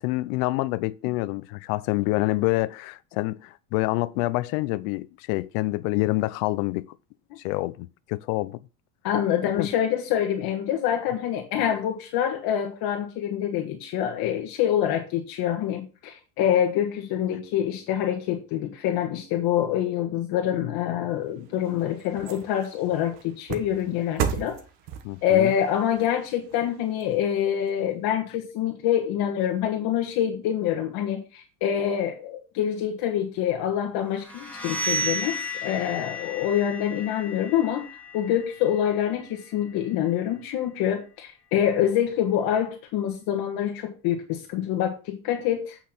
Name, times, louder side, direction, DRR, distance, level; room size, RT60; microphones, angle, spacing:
voice 1, 0.0-6.9 7.4-8.6 9.5-9.7 11.0-11.1 25.0-25.5, left 20 dB, 75° left, 0.6 m, -27 dB
voice 2, 9.0-24.6 25.2-35.4 35.6-37.8 38.1-45.8, left 10 dB, 55° left, 1.5 m, -26 dB
sound 1, 21.2-27.7 28.2-28.3, right 8 dB, 65° right, 1.5 m, -36 dB
sound 2, 34.2-39.9, left 1 dB, 5° left, 1.9 m, -34 dB
8.4 x 5.8 x 4.4 m
cardioid pair, 140°, 43 cm